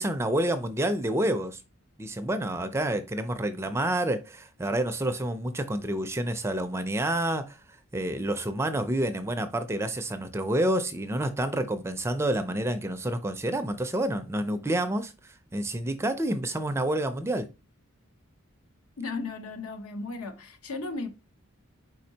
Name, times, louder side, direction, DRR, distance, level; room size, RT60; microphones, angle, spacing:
voice 1, 0.0-1.6 2.0-7.6 7.9-17.5, right 1 dB, 10° right, 0.4 m, -28 dB
voice 2, 19.0-21.1, left 3 dB, 80° left, 0.8 m, -35 dB
4.5 x 4.3 x 2.7 m
head